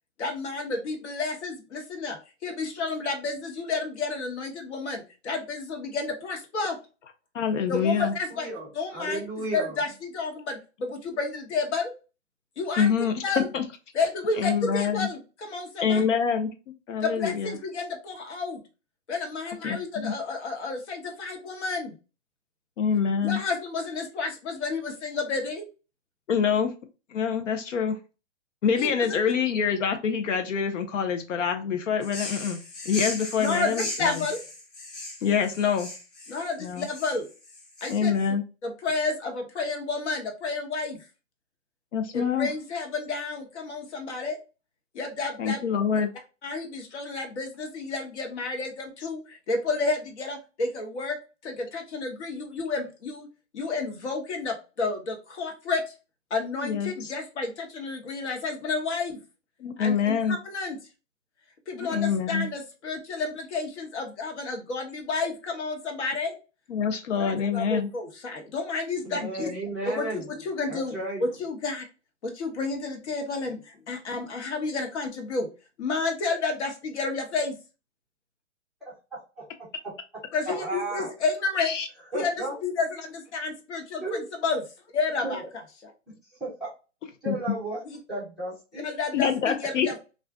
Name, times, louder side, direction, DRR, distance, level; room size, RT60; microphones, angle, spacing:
voice 1, 0.2-2.2 2.4-6.8 7.7-8.5 8.7-9.2 9.5-11.9 12.6-12.9 13.2-13.5 13.9-16.0 17.0-18.6 19.1-21.9 23.2-25.6 28.8-29.2 33.4-34.4 36.3-37.3 37.8-38.1 38.6-41.0 42.1-44.4 44.9-45.6 46.4-51.2 51.4-53.3 53.5-55.9 56.3-59.2 59.8-60.8 61.7-66.3 67.2-69.5 69.8-71.8 72.2-75.5 75.8-77.6 80.3-81.7 82.1-82.3 82.6-84.6 84.9-85.4 85.8-85.9 87.9-88.0 88.8-90.0, left 3 dB, 65° left, 4 dB, 1.1 m, -31 dB
voice 2, 7.3-8.2 12.8-13.2 13.5-13.6 14.4-15.1 15.8-16.5 16.9-17.6 19.6-20.1 22.8-23.4 26.3-26.7 27.1-28.0 28.6-32.6 32.8-34.3 35.2-35.9 36.6-36.9 37.9-38.4 41.9-42.5 45.4-46.1 56.6-57.1 59.6-60.4 61.7-62.5 66.7-67.9 81.6-81.9 87.3-87.4 89.1-89.9, left 7 dB, 80° left, 6 dB, 0.6 m, -26 dB
voice 3, 8.3-9.8 69.0-70.3 70.7-71.2 80.5-81.1 82.1-82.6 84.0-84.2 85.2-85.5 86.4-86.7 87.2-87.8 88.1-88.8, right 2 dB, ahead, -9 dB, 0.4 m, -33 dB
sound 1, 32.0-38.3, left 2 dB, 30° left, 0.9 m, -37 dB
2.5 x 2.1 x 3.5 m, 0.31 s
hypercardioid pair, 140°, 37 cm